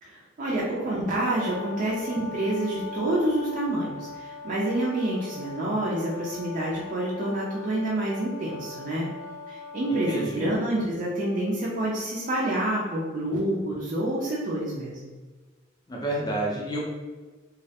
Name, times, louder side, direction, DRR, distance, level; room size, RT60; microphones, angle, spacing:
voice 1, 0.0-9.1 9.5-14.9, right 1 dB, 40° right, -6 dB, 0.4 m, -28 dB
Brass instrument, 1.2-10.3, left 3 dB, 80° right, 0.7 m, -40 dB
voice 2, 10.1-10.5 15.9-16.8, right 1 dB, 20° left, -2 dB, 0.5 m, -29 dB
2.3 x 2.0 x 2.7 m, 1.3 s
head